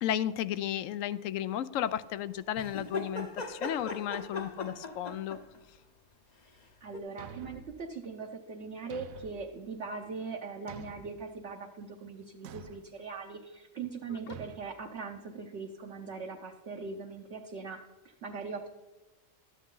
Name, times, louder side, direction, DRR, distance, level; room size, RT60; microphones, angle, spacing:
voice 1, 0.0-5.4, left 11 dB, 75° left, 16 dB, 0.9 m, -33 dB
sound 1, 2.6-5.6 6.9-7.0, left 2 dB, 35° left, 0.8 m, -39 dB
voice 2, 6.8-18.7, right 4 dB, 60° right, 0 dB, 1.1 m, -41 dB
Thump thud, 7.2-7.8 8.9-9.5 10.7-11.2 12.4-12.9 14.3-14.6, right 7 dB, 90° right, 1.0 m, -47 dB
13.0 x 9.1 x 3.8 m, 1.1 s
omnidirectional pair, 1.4 m